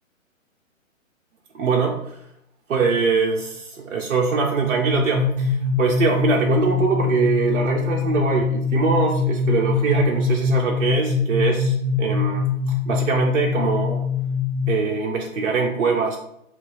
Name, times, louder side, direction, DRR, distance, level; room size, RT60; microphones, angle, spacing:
voice 1, 1.5-2.2 2.7-14.0 14.7-16.2, right 5 dB, 60° right, 0 dB, 0.6 m, -22 dB
sound 1, 4.8-14.7, left 5 dB, 55° left, 0.8 m, -23 dB
2.8 x 2.5 x 3.7 m, 0.77 s
figure-of-eight pair, 130°, 41 cm